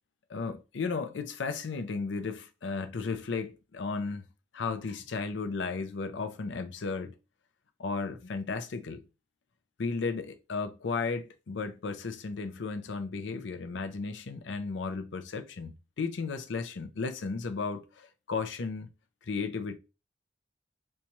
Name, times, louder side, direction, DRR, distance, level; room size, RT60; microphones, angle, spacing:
voice 1, 0.3-4.3 4.5-7.2 7.8-9.0 9.8-18.9 19.2-19.8, left 4 dB, 90° left, 0.5 m, -34 dB
4.1 x 2.3 x 3.0 m
head